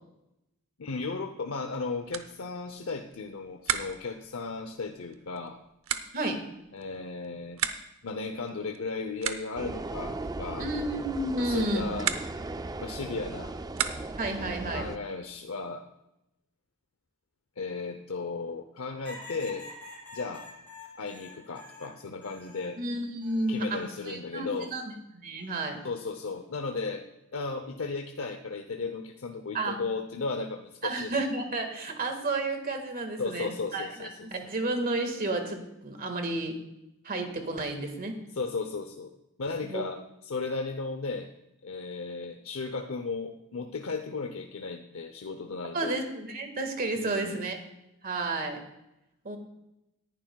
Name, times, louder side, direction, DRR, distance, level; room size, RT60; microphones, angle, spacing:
voice 1, 0.8-5.6 6.7-7.6 8.0-10.7 11.4-12.1 12.8-13.6 14.7-15.8 17.6-19.7 20.1-20.5 21.0-22.8 23.5-24.7 25.8-27.1 27.3-31.2 33.2-34.3 38.3-41.3 41.6-46.0 46.9-47.4, left 4 dB, 75° left, 6 dB, 0.7 m, -35 dB
sound 1, 1.6-14.4, right 8 dB, 75° right, 0.8 m, -38 dB
sound 2, 9.6-15.0, right 2 dB, 20° right, 0.4 m, -37 dB
voice 2, 10.6-11.9 14.2-14.9 22.8-25.8 29.5-29.8 30.8-36.6 37.0-38.2 39.6-39.8 45.7-47.6 48.0-48.6 49.2-49.4, right 2 dB, 45° right, 5 dB, 1.8 m, -31 dB
sound 3, 19.0-22.8 23.2-24.0 25.4-25.8, left 2 dB, 10° left, 4.3 m, -47 dB
18.5 x 11.0 x 2.3 m, 0.88 s
head